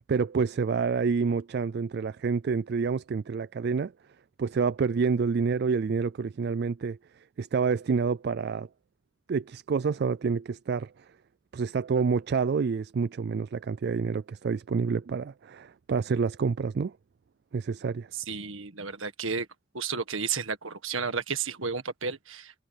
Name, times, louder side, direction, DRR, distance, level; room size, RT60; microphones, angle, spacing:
voice 1, 0.1-3.9 4.4-7.0 7.4-8.7 9.3-10.9 11.5-16.9 17.5-18.1, right 5 dB, 50° right, 0.3 m, -28 dB
voice 2, 18.1-19.5 19.7-22.5, right 5 dB, 70° right, 1.7 m, -32 dB
head